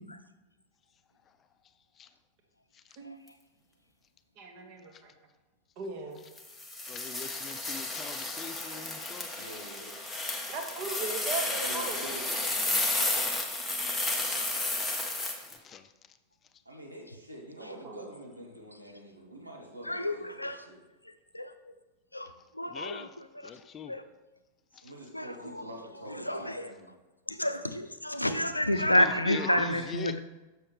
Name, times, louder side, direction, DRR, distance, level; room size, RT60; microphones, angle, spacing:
voice 1, 4.4-5.1 5.8-6.2 10.5-12.0 17.8-18.0 29.0-29.6, right 3 dB, 40° right, 3 dB, 1.4 m, -38 dB
sound 1, 6.4-15.6, left 2 dB, 5° left, 1.1 m, -32 dB
voice 2, 6.8-9.5 15.3-15.9 22.2-22.3 22.7-23.2 23.4-23.9 24.7-24.9 28.7-30.2, left 7 dB, 25° left, 11 dB, 0.4 m, -43 dB
voice 3, 9.3-9.9 11.6-13.2 16.6-20.8 24.8-26.9, right 1 dB, 85° right, -2 dB, 1.5 m, -46 dB
voice 4, 19.9-20.7 21.3-21.5 22.1-22.3 22.6-23.1 23.4-23.5 23.9-24.0 25.1-25.3 26.3-26.7 27.3-30.2, left 1 dB, 85° left, 10 dB, 0.4 m, -29 dB
6.9 x 6.4 x 3.4 m, 1.1 s
figure-of-eight pair, 90°, 0 cm